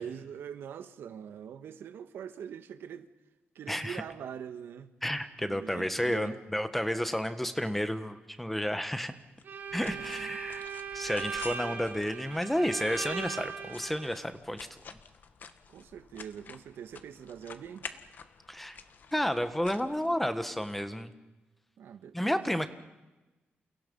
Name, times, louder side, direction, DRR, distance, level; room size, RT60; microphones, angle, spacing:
voice 1, 0.0-3.1 3.5-4.9 5.5-6.4 9.8-10.4 15.7-17.9 21.8-22.4, right 8 dB, 90° right, 1.5 m, -43 dB
voice 2, 3.7-4.0 5.0-9.1 9.7-10.6 10.9-14.8 18.5-18.8 19.1-21.1 22.1-22.7, equal, 5° left, 1.4 m, -31 dB
sound 1, 9.4-20.7, left 6 dB, 55° left, 1.5 m, -50 dB
Bowed string instrument, 9.4-14.2, right 7 dB, 60° right, 3.4 m, -39 dB
29.5 x 29.0 x 5.5 m
wide cardioid pair, 155°, 4 cm